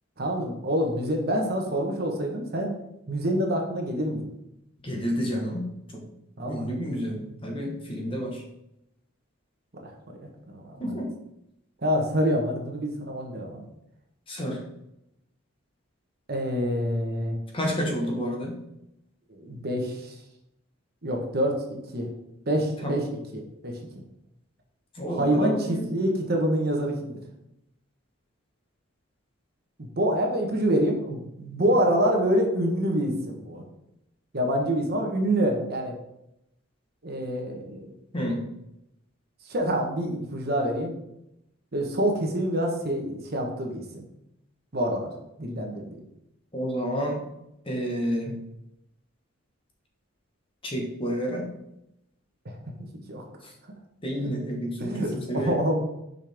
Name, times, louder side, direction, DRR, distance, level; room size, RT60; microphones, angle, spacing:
voice 1, 0.2-2.7 3.1-4.3 6.4-6.7 9.7-9.9 10.2-10.8 11.8-13.6 16.3-17.4 19.3-20.1 21.0-22.1 22.5-23.8 25.1-27.2 29.8-33.6 34.3-35.9 37.0-37.9 39.5-40.9 41.7-44.0 44.7-45.1 45.4-46.0 52.4-52.6 52.9-53.2 54.8-55.8, equal, 50° right, 1 dB, 1.1 m, -26 dB
voice 2, 4.8-6.0 6.5-8.4 10.8-11.1 14.3-14.6 17.5-18.6 22.8-23.1 24.9-25.9 38.1-38.4 46.5-47.2 47.6-48.4 50.6-51.5 53.4-53.5 54.0-55.6, equal, 25° left, 0 dB, 1.3 m, -30 dB
6.3 x 5.1 x 3.5 m, 0.84 s
head